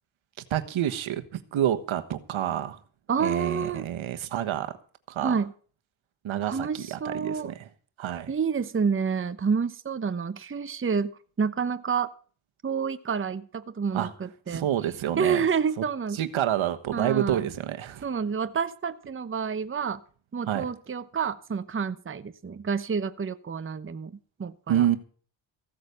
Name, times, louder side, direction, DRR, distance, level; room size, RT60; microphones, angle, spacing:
voice 1, 0.5-2.8 3.2-4.7 5.1-5.3 6.2-7.7 8.0-8.3 13.9-14.1 14.5-15.4 16.1-18.0 20.5-20.6 24.7-25.0, right 11 dB, 80° right, 1.4 m, -28 dB
voice 2, 3.1-3.9 5.2-5.5 6.5-7.5 8.3-11.1 11.4-12.1 12.6-14.7 15.2-16.2 16.9-17.5 18.0-20.0 20.3-24.1 24.4-24.9, right 6 dB, 25° right, 0.9 m, -29 dB
15.5 x 8.1 x 6.9 m
cardioid pair, 75°, 47 cm